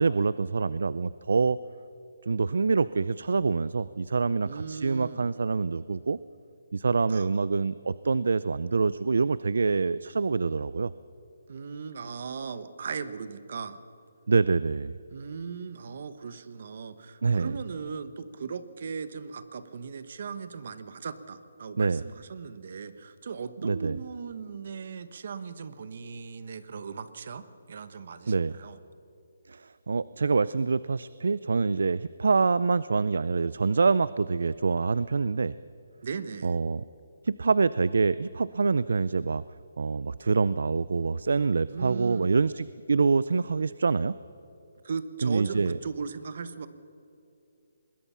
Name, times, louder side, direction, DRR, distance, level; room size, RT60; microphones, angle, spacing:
voice 1, 0.0-1.6 2.3-6.2 6.7-10.9 14.3-14.9 17.2-17.5 21.8-22.0 23.6-24.0 28.3-28.5 29.5-35.5 36.4-36.8 37.2-39.4 39.8-44.2 45.2-45.8, right 4 dB, 75° right, 17 dB, 0.4 m, -26 dB
voice 2, 4.4-5.3 7.1-7.3 11.5-13.8 15.1-28.8 36.0-36.6 41.7-42.3 44.8-46.7, right 5 dB, 50° right, 13 dB, 1.1 m, -38 dB
25.0 x 20.5 x 5.7 m, 2.7 s
hypercardioid pair, 170°, 0 cm